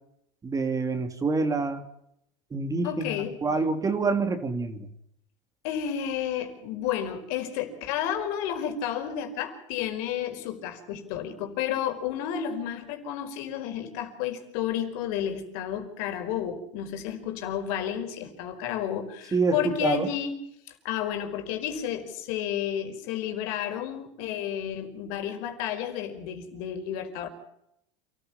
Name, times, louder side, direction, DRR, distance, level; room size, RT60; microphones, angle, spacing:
voice 1, 0.4-1.8 2.5-4.9 19.3-20.1, right 3 dB, 20° right, 7 dB, 3.1 m, -27 dB
voice 2, 2.8-3.4 5.6-20.4 20.7-27.3, left 9 dB, 65° left, 5 dB, 5.0 m, -31 dB
28.5 x 14.5 x 7.2 m, 0.76 s
supercardioid pair, 110°, 16 cm